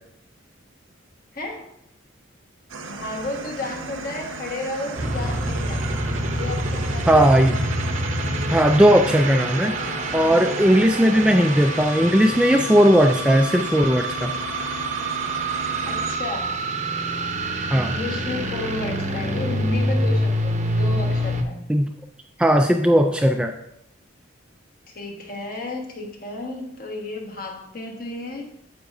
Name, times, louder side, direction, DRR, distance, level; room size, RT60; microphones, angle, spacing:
voice 1, 1.3-1.7 2.8-6.0 6.3-7.2 15.8-16.6 17.7-21.6 24.9-28.4, left 2 dB, 45° left, 1 dB, 1.5 m, -32 dB
sound 1, 2.7-16.2, right 3 dB, 85° right, 0.8 m, -35 dB
sound 2, 4.9-21.4, right 1 dB, 35° right, 0.7 m, -26 dB
voice 2, 7.1-7.6 8.5-9.7 10.1-14.3 17.7-17.9 21.7-21.9 22.4-23.5, equal, 5° right, 4 dB, 0.3 m, -17 dB
9.5 x 7.4 x 2.7 m, 0.78 s
head